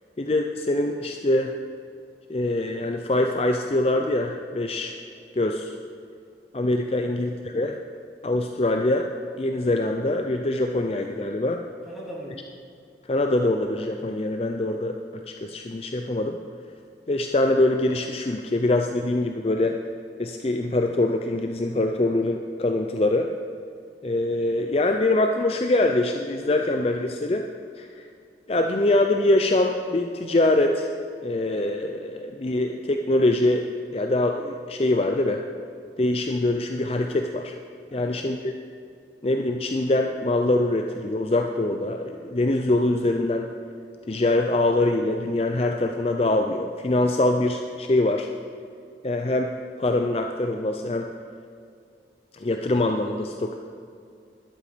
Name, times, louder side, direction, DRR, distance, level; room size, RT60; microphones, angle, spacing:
voice 1, 0.2-1.5 2.3-5.0 5.4-5.7 6.5-7.8 8.2-9.1 9.4-11.6 13.0-15.0 15.3-16.4 17.1-19.8 20.2-23.3 24.0-27.5 27.8-28.1 28.5-30.9 31.2-33.6 33.9-35.4 36.0-37.5 37.9-38.5 39.2-43.5 44.1-48.3 49.0-49.5 49.8-51.1 52.3-53.6, left 2 dB, 35° left, 4 dB, 0.5 m, -24 dB
voice 2, 11.9-12.5 37.9-38.2, right 1 dB, ahead, -7 dB, 3.1 m, -40 dB
13.0 x 11.0 x 5.1 m, 2.3 s
head